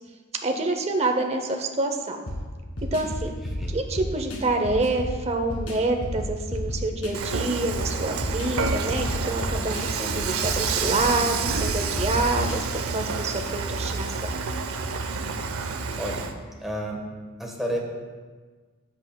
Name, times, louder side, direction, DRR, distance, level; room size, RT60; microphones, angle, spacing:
voice 1, 0.4-2.2 2.9-3.3 3.7-14.3, right 2 dB, 30° right, 4 dB, 0.6 m, -27 dB
sound 1, 2.3-13.1, equal, 75° left, 1.7 m, -33 dB
Dishes pots and pans / Frying (food), 7.1-16.3, right 5 dB, 75° right, 0.6 m, -29 dB
voice 2, 16.0-16.3 16.6-17.0 17.4-17.8, equal, ahead, -1 dB, 1.2 m, -30 dB
13.0 x 8.3 x 2.2 m, 1.4 s
head